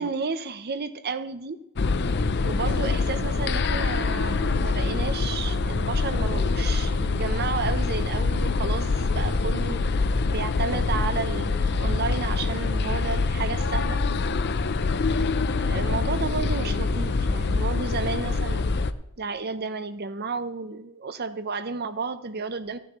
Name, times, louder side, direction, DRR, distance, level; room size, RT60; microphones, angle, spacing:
voice 1, 0.0-1.6 2.4-9.8 10.3-14.0 15.6-18.6 19.2-22.8, right 4 dB, 45° right, 11 dB, 0.8 m, -32 dB
sound 1, 1.8-18.9, left 3 dB, 50° left, 0.6 m, -25 dB
15.5 x 9.9 x 3.1 m, 0.83 s
head